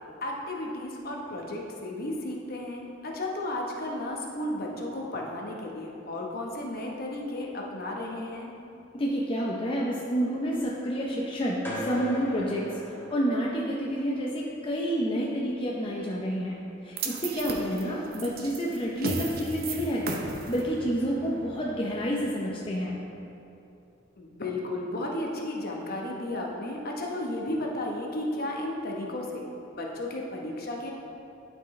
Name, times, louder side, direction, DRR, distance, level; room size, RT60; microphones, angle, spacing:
voice 1, 0.2-8.5 17.6-18.1 24.2-30.9, left 1 dB, 55° left, -1 dB, 1.0 m, -34 dB
voice 2, 8.9-12.6 13.1-16.6 16.8-20.2 20.5-23.0, equal, 30° left, -3 dB, 0.6 m, -29 dB
sound 1, 11.6-13.8, left 1 dB, 10° left, 1.1 m, -37 dB
sound 2, 17.0-23.2, right 3 dB, 50° right, 0.6 m, -37 dB
11.5 x 4.7 x 3.2 m, 2.8 s
head